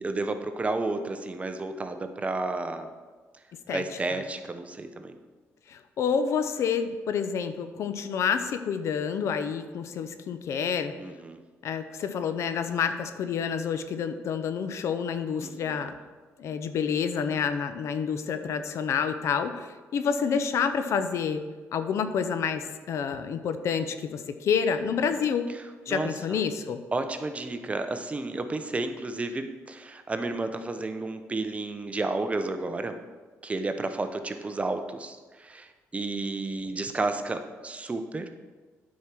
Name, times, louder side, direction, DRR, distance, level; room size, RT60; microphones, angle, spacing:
voice 1, 0.0-2.9 3.7-5.1 11.0-11.4 15.4-15.9 25.0-25.3 25.5-26.4 26.9-33.0 33.4-38.3, right 2 dB, 25° right, 8 dB, 0.8 m, -32 dB
voice 2, 5.7-10.9 11.6-15.9 16.4-21.4 21.7-25.5 25.9-26.8, left 6 dB, 65° left, 10 dB, 0.6 m, -28 dB
9.2 x 4.8 x 6.0 m, 1.4 s
cardioid pair, 85°, 5 cm